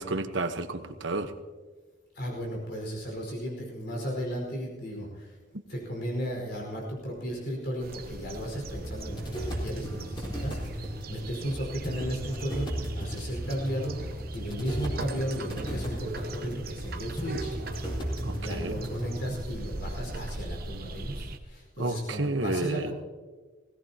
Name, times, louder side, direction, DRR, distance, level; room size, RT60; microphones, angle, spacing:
voice 1, 0.0-1.3 18.2-18.7 21.8-22.9, right 2 dB, 75° right, 8 dB, 1.2 m, -31 dB
voice 2, 2.1-5.4 5.7-17.5 18.3-22.9, equal, 55° left, 0 dB, 5.0 m, -35 dB
sound 1, 7.8-21.4, right 2 dB, 50° right, 1.0 m, -40 dB
sound 2, 8.7-19.3, equal, 25° left, 4.3 m, -36 dB
20.0 x 17.5 x 2.9 m, 1.4 s
head